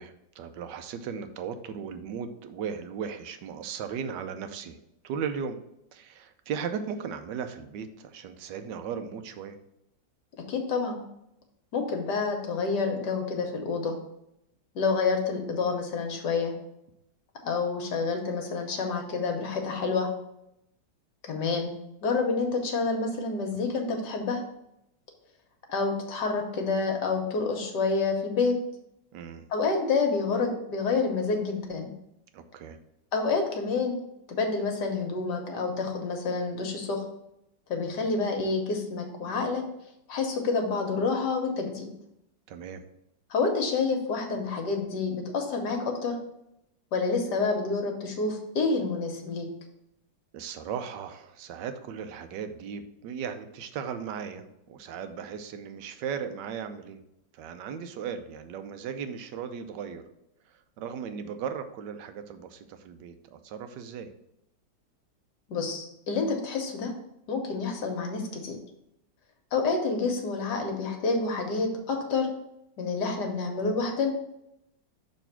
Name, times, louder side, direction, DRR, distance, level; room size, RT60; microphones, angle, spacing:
voice 1, 0.0-4.8 5.0-5.6 5.9-9.6 29.1-29.4 32.3-32.8 42.5-42.8 50.3-57.0 57.3-60.0 60.8-64.1, right 7 dB, 75° right, 9 dB, 1.2 m, -37 dB
voice 2, 10.5-11.0 11.7-14.0 14.7-16.5 17.4-20.1 21.2-21.7 22.0-24.4 25.7-28.6 29.5-31.9 33.1-33.9 34.3-37.0 37.7-39.6 40.1-41.9 43.3-46.2 46.9-49.5 65.5-66.9 67.3-68.6 69.5-72.3 72.8-74.1, left 4 dB, 65° left, 3 dB, 1.5 m, -28 dB
6.3 x 3.3 x 5.8 m, 0.82 s
omnidirectional pair, 2.0 m